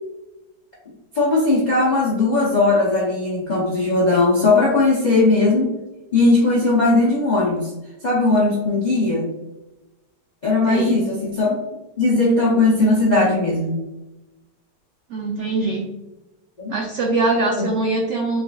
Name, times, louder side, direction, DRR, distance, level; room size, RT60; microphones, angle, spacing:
voice 1, 1.1-5.7 6.1-7.7 8.0-9.3 10.4-11.6 12.0-13.8 16.6-16.7 17.6-17.7, left 2 dB, 55° left, -4 dB, 0.4 m, -18 dB
voice 2, 10.7-11.0 15.1-15.9 16.7-18.4, right 2 dB, 80° right, 1 dB, 0.6 m, -22 dB
5.5 x 2.6 x 2.3 m, 1.0 s
omnidirectional pair, 1.8 m